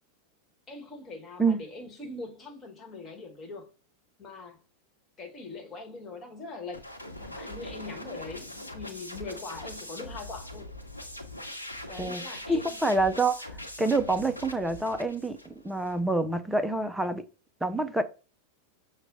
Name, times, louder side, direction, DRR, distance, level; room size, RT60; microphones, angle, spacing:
voice 1, 0.7-3.7 4.2-4.6 5.2-6.9 7.2-10.7 11.8-12.8, left 3 dB, 25° left, 1.3 m, -42 dB
sound 1, 6.7-16.0, left 1 dB, 85° left, 0.7 m, -42 dB
voice 2, 12.0-13.4 13.8-17.2 17.6-18.0, right 2 dB, 5° right, 0.4 m, -27 dB
6.0 x 2.1 x 3.8 m
figure-of-eight pair, 90°, 0 cm